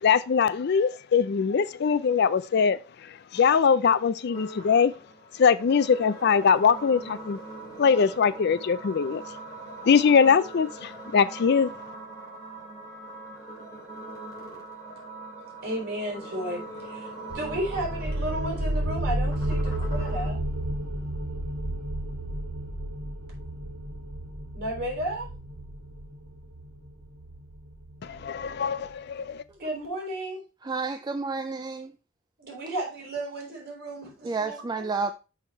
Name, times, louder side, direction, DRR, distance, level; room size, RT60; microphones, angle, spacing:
voice 1, 0.0-2.8 3.3-4.9 5.4-7.4 7.8-9.2 9.8-11.7 28.0-29.4, left 6 dB, 50° left, 0.4 m, -22 dB
sound 1, 4.3-20.3, right 2 dB, 15° left, 2.7 m, -42 dB
voice 2, 15.6-20.4 24.5-25.3 29.6-30.4 32.4-34.9, right 1 dB, 50° right, 4.2 m, -33 dB
sound 2, 17.3-28.7, right 1 dB, 70° right, 2.3 m, -32 dB
voice 3, 30.6-31.9 34.2-35.1, right 4 dB, 20° right, 0.3 m, -30 dB
6.2 x 5.7 x 4.4 m
head